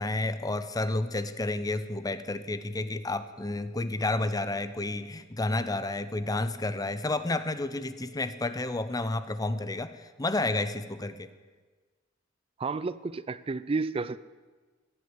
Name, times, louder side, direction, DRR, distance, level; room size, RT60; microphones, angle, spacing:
voice 1, 0.0-11.3, left 2 dB, 20° left, 12 dB, 0.7 m, -31 dB
voice 2, 12.6-14.2, right 4 dB, 30° right, 16 dB, 0.4 m, -31 dB
16.0 x 9.8 x 8.1 m, 1.4 s
head